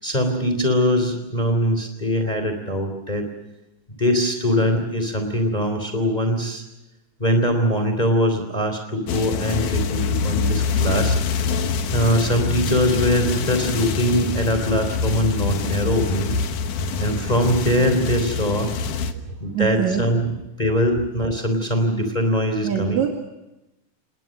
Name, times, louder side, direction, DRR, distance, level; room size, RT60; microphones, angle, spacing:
voice 1, 0.0-3.3 4.0-6.6 7.2-11.2 11.9-16.4 17.0-18.7 19.4-20.3 20.6-23.0, equal, 15° left, 6 dB, 3.4 m, -22 dB
sound 1, 9.1-19.1, left 5 dB, 75° left, 2.9 m, -25 dB
voice 2, 19.5-20.1 22.6-23.1, right 8 dB, 65° right, 3 dB, 3.4 m, -23 dB
29.0 x 20.0 x 6.6 m, 0.95 s
omnidirectional pair, 3.6 m